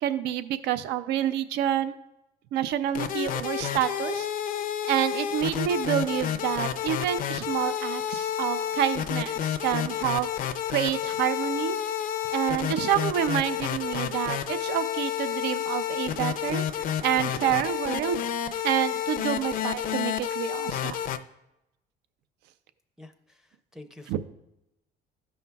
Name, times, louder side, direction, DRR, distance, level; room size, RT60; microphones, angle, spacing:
voice 1, 0.0-1.9 2.5-4.3 4.9-11.8 12.3-16.7 17.0-18.2 18.6-21.0 24.1-24.2, right 11 dB, 80° right, 13 dB, 0.4 m, -28 dB
sound 1, 2.7-21.2, left 10 dB, 55° left, 0.5 m, -30 dB
sound 2, 15.7-17.7, right 4 dB, 65° right, 1.1 m, -49 dB
voice 2, 23.0-24.2, left 2 dB, 5° right, 6 dB, 0.5 m, -48 dB
12.5 x 5.4 x 2.3 m, 0.88 s
cardioid pair, 110°, 17 cm